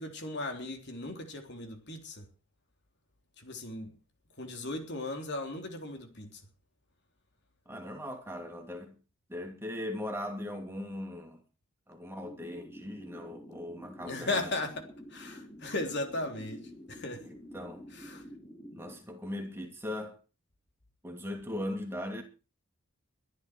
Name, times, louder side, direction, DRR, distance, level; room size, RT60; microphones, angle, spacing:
voice 1, 0.0-2.3 3.4-3.9 4.4-6.4 14.0-16.6 16.9-17.3 17.9-18.2, left 2 dB, 50° left, 3.4 m, -37 dB
voice 2, 7.7-9.0 9.3-11.4 11.9-14.4 17.2-17.9 18.7-20.2 21.0-22.2, left 1 dB, 10° right, 2.7 m, -39 dB
sound 1, 12.2-19.0, equal, 10° left, 3.0 m, -49 dB
22.5 x 11.5 x 4.6 m
head